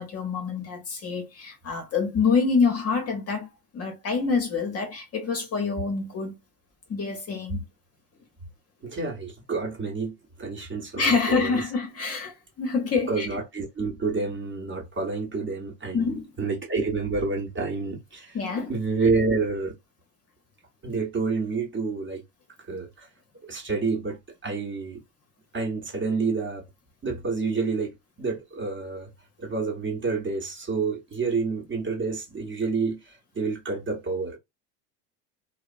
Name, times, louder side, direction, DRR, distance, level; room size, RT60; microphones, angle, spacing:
voice 1, 0.0-3.5 3.7-6.3 6.9-7.6 11.0-13.3 15.9-16.3 18.3-18.7, left 5 dB, 30° left, 0.8 m, -26 dB
voice 2, 8.8-11.6 13.1-18.4 18.7-19.7 20.8-22.2 22.7-23.1 23.4-25.0 25.5-26.6 27.0-29.1 29.4-34.4, right 4 dB, 25° right, 1.0 m, -29 dB
2.7 x 2.0 x 2.5 m
hypercardioid pair, 85°, 49 cm